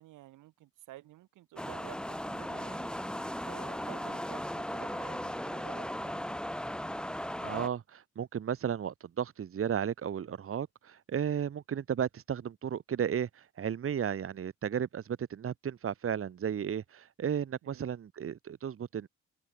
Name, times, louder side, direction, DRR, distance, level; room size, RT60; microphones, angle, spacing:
voice 1, 0.0-3.2 3.4-6.3 17.6-17.9, right 16 dB, 90° right, 5.1 m, -51 dB
sound 1, 1.6-7.7, equal, 5° left, 1.6 m, -37 dB
voice 2, 7.4-19.1, right 8 dB, 45° right, 1.4 m, -34 dB
open air
cardioid pair, 90°, 30 cm